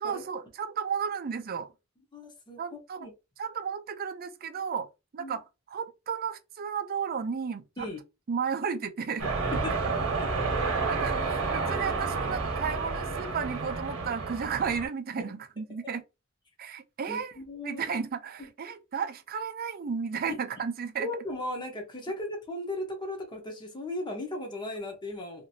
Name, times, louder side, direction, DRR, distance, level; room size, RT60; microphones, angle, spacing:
voice 1, 0.0-1.7 2.6-3.1 3.4-4.9 5.1-7.6 8.3-9.6 10.9-16.0 16.6-17.4 17.6-21.1, right 6 dB, 45° right, 0.4 m, -33 dB
voice 2, 2.1-3.1 5.2-5.4 7.8-8.0 9.6-9.7 10.2-10.3 10.5-10.7 15.2-15.3 15.7-15.8 17.1-17.8 18.4-18.5 21.0-25.5, left 1 dB, 20° left, 0.9 m, -37 dB
sound 1, 9.2-14.9, right 4 dB, 75° right, 0.9 m, -30 dB
2.9 x 2.5 x 2.6 m
head